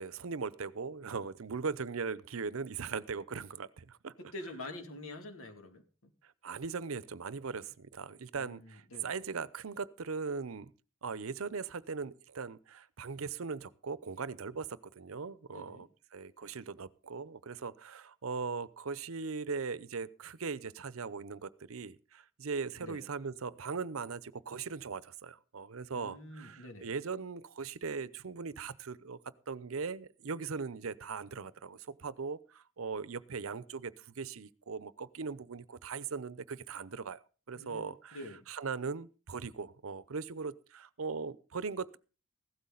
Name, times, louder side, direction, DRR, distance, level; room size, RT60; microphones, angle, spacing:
voice 1, 0.0-4.1 6.2-10.7 11.0-29.2 29.5-37.2 37.5-38.2 38.5-42.0, right 5 dB, 85° right, 18 dB, 0.7 m, -39 dB
voice 2, 4.2-5.8 8.3-9.2 15.5-15.9 22.8-23.0 25.9-26.9 37.5-38.4, left 1 dB, 80° left, 5 dB, 2.5 m, -46 dB
15.5 x 12.5 x 3.9 m, 0.36 s
head